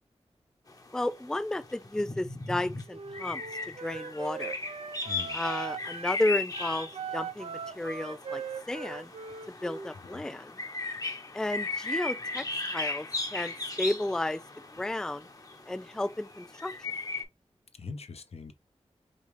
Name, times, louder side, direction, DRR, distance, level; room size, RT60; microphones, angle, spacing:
sound 1, 0.7-17.2, left 3 dB, 30° left, 0.9 m, -37 dB
voice 1, 0.9-3.4 3.8-4.6 5.3-8.4 8.7-9.1 9.6-10.5 11.3-12.5 12.7-14.4 14.7-15.2 15.7-16.7, left 1 dB, 5° left, 0.3 m, -32 dB
Wind instrument woodwind instrument, 2.9-6.1 6.5-9.9, right 6 dB, 60° right, 0.5 m, -40 dB
voice 2, 5.1-5.4 10.0-10.3 17.8-18.5, left 4 dB, 65° left, 0.7 m, -42 dB
5.2 x 2.4 x 3.2 m
wide cardioid pair, 90°, 11 cm